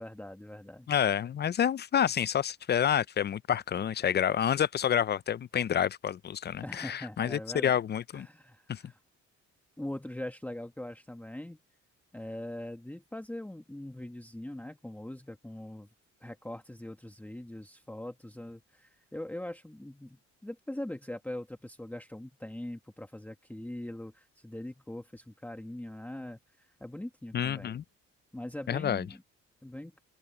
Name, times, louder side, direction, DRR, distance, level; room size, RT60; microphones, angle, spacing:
voice 1, 0.0-0.9 6.6-7.8 8.1-9.0 9.8-11.6 12.1-15.9 16.2-27.7 28.3-29.2 29.6-29.9, left 1 dB, 5° left, 1.4 m, -42 dB
voice 2, 0.9-8.3 8.7-8.8 27.3-27.8 28.7-29.0, left 9 dB, 35° left, 0.5 m, -28 dB
open air
cardioid pair, 90°, 30 cm